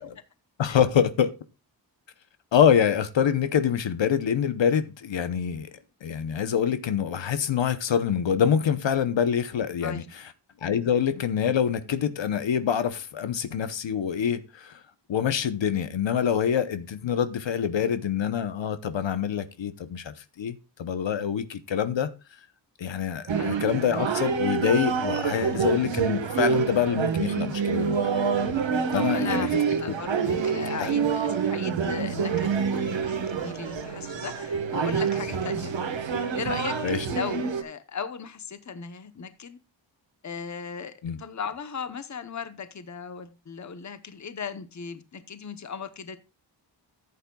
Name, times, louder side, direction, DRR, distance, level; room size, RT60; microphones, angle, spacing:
voice 1, 0.6-1.3 2.5-5.7 6.0-10.0 10.6-14.8 15.1-22.1 22.8-28.0 28.9-29.5 30.8-30.9 36.8-37.0 41.0-41.2, left 8 dB, 75° left, 0.9 m, -25 dB
sound 1, 23.3-37.6, right 6 dB, 75° right, 1.4 m, -27 dB
voice 2, 28.9-39.6 40.2-46.2, left 6 dB, 40° left, 0.9 m, -37 dB
14.0 x 8.5 x 2.3 m
wide cardioid pair, 110°, 45 cm